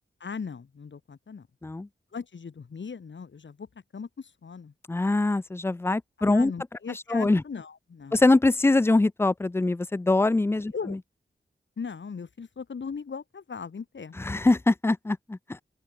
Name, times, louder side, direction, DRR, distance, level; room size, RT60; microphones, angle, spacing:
voice 1, 0.2-1.5 2.1-3.7 3.9-4.7 6.2-8.2 10.7-11.0 11.8-14.2, left 5 dB, 75° left, 3.3 m, -38 dB
voice 2, 4.9-6.5 7.1-7.4 8.1-11.0 14.2-15.6, left 2 dB, 15° left, 0.4 m, -23 dB
open air
wide cardioid pair, 90°, 19 cm